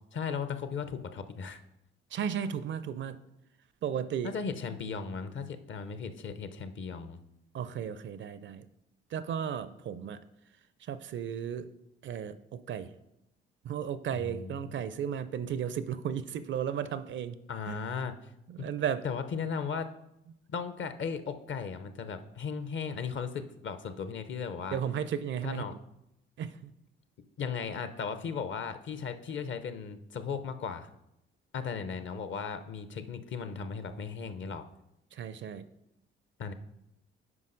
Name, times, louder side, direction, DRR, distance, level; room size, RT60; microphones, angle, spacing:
voice 1, 0.1-1.6 4.2-7.2 14.1-14.7 17.5-18.1 18.6-18.7 19.0-19.9 20.5-24.8 25.4-25.7 27.4-30.9 31.5-34.7 36.4-36.5, left 6 dB, 40° left, 10 dB, 0.6 m, -36 dB
voice 2, 2.1-3.2 3.8-4.3 7.5-8.7 9.1-10.2 10.8-11.7 12.0-12.9 13.6-17.4 17.7-17.8 18.5-19.0 24.7-25.6 26.4-26.6 35.1-35.6, right 8 dB, 40° right, 13 dB, 0.4 m, -34 dB
9.5 x 5.2 x 2.6 m, 0.83 s
figure-of-eight pair, 45°, 29 cm